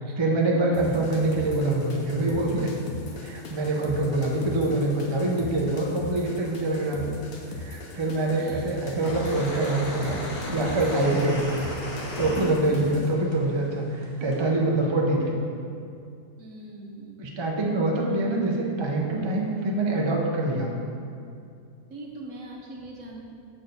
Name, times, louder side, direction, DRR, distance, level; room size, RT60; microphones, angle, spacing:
voice 1, 0.0-2.7 3.1-7.1 7.5-11.6 11.9-15.4 17.2-20.7, right 2 dB, 30° right, -1 dB, 0.5 m, -25 dB
sound 1, 0.7-13.1, left 2 dB, 70° left, 1.2 m, -40 dB
sound 2, 9.0-13.0 13.3-14.4, left 1 dB, 40° left, 1.3 m, -35 dB
voice 2, 16.4-17.2 21.9-23.2, right 2 dB, 55° right, -2 dB, 1.3 m, -41 dB
6.2 x 4.3 x 6.5 m, 2.4 s
omnidirectional pair, 1.6 m